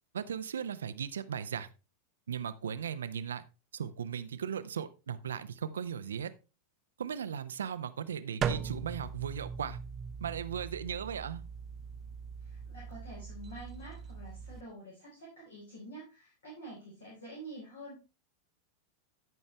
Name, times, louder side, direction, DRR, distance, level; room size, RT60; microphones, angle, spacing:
voice 1, 0.1-1.7 2.3-3.4 3.7-6.3 7.0-9.8 10.2-11.4, right 8 dB, 65° right, 0.7 m, -37 dB
sound 1, 8.4-14.6, right 7 dB, 30° right, 0.7 m, -40 dB
voice 2, 12.4-18.0, right 1 dB, 65° left, 4.1 m, -48 dB
13.5 x 5.4 x 3.3 m
figure-of-eight pair, 90°, 0 cm